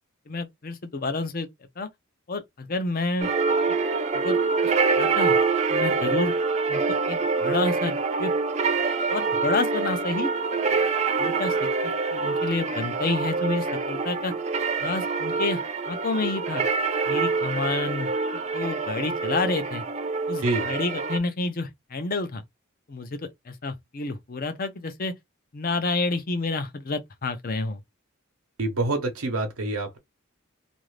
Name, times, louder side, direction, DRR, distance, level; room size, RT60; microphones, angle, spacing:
voice 1, 0.3-1.5 1.8-1.9 2.3-3.3 4.1-4.4 5.0-5.4 5.7-6.3 6.7-8.3 9.1-10.3 10.7-10.8 11.2-14.3 14.8-16.6 17.1-18.1 18.5-19.8 20.3-22.4 22.9-23.2 23.5-25.1 25.5-27.8, left 3 dB, 40° left, 0.6 m, -29 dB
sound 1, 3.2-21.2, right 4 dB, 30° right, 0.4 m, -25 dB
voice 2, 28.6-30.0, right 2 dB, 85° right, 0.9 m, -26 dB
2.5 x 2.4 x 3.2 m
head